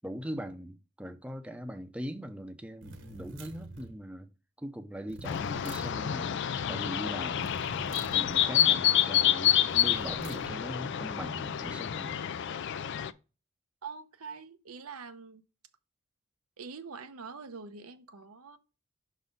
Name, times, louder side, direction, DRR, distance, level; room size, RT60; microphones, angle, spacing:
voice 1, 0.0-4.3 4.6-6.4 6.7-7.6 8.1-12.2, equal, 5° right, 0.6 m, -41 dB
sound 1, 2.8-4.0 5.1-6.0 7.4-8.5 9.7-10.6, right 2 dB, 60° right, 1.1 m, -46 dB
sound 2, 5.2-13.1, left 11 dB, 55° left, 0.4 m, -28 dB
voice 2, 13.8-15.4 16.6-18.6, right 5 dB, 90° right, 0.8 m, -44 dB
6.0 x 4.1 x 5.3 m
head